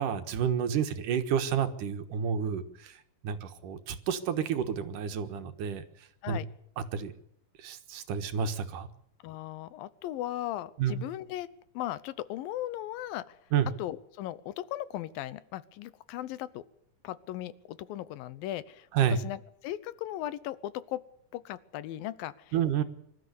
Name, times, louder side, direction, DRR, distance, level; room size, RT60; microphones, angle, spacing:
voice 1, 0.0-5.8 6.3-6.4 6.9-7.1 7.6-8.9 10.8-11.0 13.5-13.7 18.9-19.2 22.5-22.8, right 8 dB, 70° right, 8 dB, 2.9 m, -30 dB
voice 2, 9.2-11.5 11.7-13.4 13.8-16.6 17.0-21.0 21.3-22.5, left 13 dB, 85° left, 17 dB, 2.7 m, -37 dB
25.0 x 13.0 x 8.4 m, 0.73 s
omnidirectional pair, 4.0 m